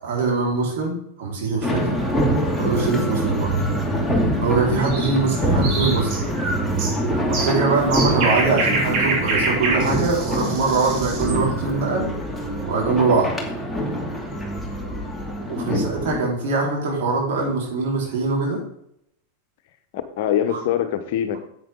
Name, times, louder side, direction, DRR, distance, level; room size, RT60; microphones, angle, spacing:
voice 1, 0.0-2.0 2.5-3.5 4.4-6.1 7.3-12.1 12.6-13.3 15.5-18.6 20.5-20.6, right 3 dB, 60° right, -2 dB, 4.7 m, -22 dB
sound 1, 1.6-16.3, right 1 dB, ahead, 2.5 m, -25 dB
sound 2, 4.8-11.4, right 2 dB, 45° right, 3.3 m, -26 dB
voice 2, 19.9-21.4, left 10 dB, 60° left, 9 dB, 1.1 m, -24 dB
10.0 x 8.6 x 3.9 m, 0.73 s
figure-of-eight pair, 90°, 0 cm